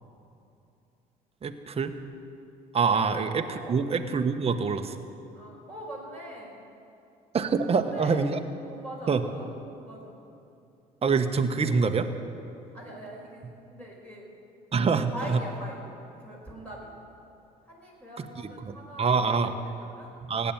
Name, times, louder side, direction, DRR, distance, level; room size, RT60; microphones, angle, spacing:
voice 1, 1.4-1.9 2.7-3.4 3.7-4.9 7.3-8.4 9.1-9.2 11.0-12.1 14.7-15.4 18.2-18.3 18.6-19.5 20.3-20.5, right 5 dB, 35° right, 6 dB, 1.2 m, -25 dB
voice 2, 3.0-3.8 5.3-6.6 7.7-8.2 8.6-10.2 12.7-14.3 15.1-15.9 16.2-16.9 17.6-20.3, right 1 dB, 5° left, -4 dB, 4.8 m, -42 dB
16.0 x 9.5 x 9.0 m, 2.7 s
supercardioid pair, 75°, 18 cm